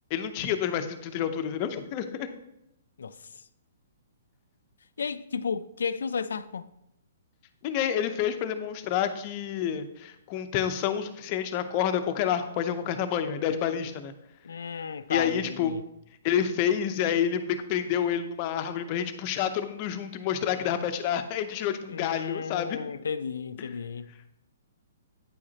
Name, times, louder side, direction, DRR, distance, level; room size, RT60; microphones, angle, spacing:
voice 1, 0.1-2.3 7.6-14.1 15.1-15.7 16.2-22.8 23.6-23.7, left 9 dB, 35° left, 0.6 m, -28 dB
voice 2, 3.0-3.4 5.0-6.7 14.4-15.8 21.9-24.1, left 6 dB, 85° left, 0.4 m, -33 dB
9.1 x 4.9 x 2.8 m
hypercardioid pair, 150°, 0 cm